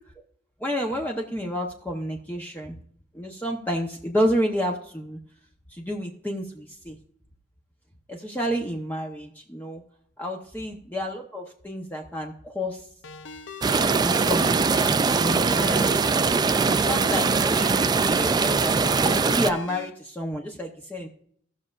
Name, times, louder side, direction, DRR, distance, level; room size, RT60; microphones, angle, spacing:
voice 1, 0.6-2.8 3.1-5.2 5.7-7.0 8.1-9.8 10.2-12.9 14.0-16.2 16.6-18.8 19.3-21.1, equal, 10° left, 0 dB, 0.8 m, -30 dB
Ringtone, 13.0-19.9, left 3 dB, 85° left, 0.6 m, -38 dB
sound 1, 13.6-19.5, right 4 dB, 20° right, 0.3 m, -22 dB
18.0 x 6.5 x 2.4 m, 0.64 s
head